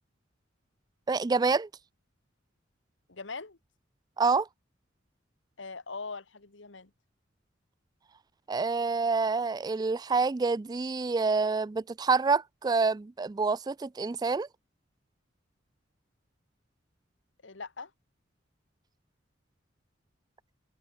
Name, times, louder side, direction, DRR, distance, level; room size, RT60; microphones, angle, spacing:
voice 1, 1.1-1.7 4.2-4.5 8.5-14.5, right 4 dB, 20° right, 0.3 m, -27 dB
voice 2, 3.1-3.6 5.6-6.9 17.4-17.9, left 4 dB, 75° left, 1.6 m, -41 dB
head